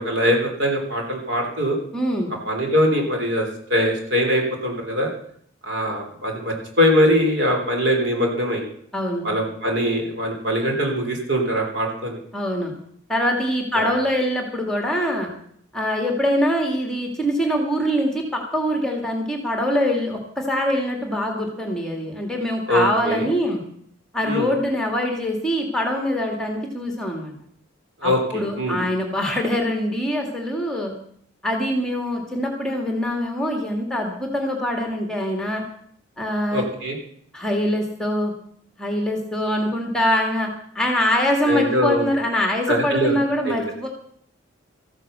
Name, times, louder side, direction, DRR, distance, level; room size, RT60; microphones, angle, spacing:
voice 1, 0.0-1.8 2.5-5.1 5.6-8.6 9.2-12.2 13.7-13.9 22.7-23.3 24.2-24.5 28.0-28.8 36.5-37.0 41.5-42.1 42.7-43.2 43.5-43.6, equal, 60° right, 1 dB, 3.6 m, -22 dB
voice 2, 1.9-2.3 8.9-9.3 12.3-12.7 13.1-15.3 15.7-23.6 24.1-27.3 28.0-30.9 31.4-35.6 36.2-36.7 37.3-38.3 38.8-40.5 40.7-43.9, equal, 5° left, 2 dB, 2.2 m, -23 dB
14.5 x 9.4 x 6.8 m, 0.65 s
head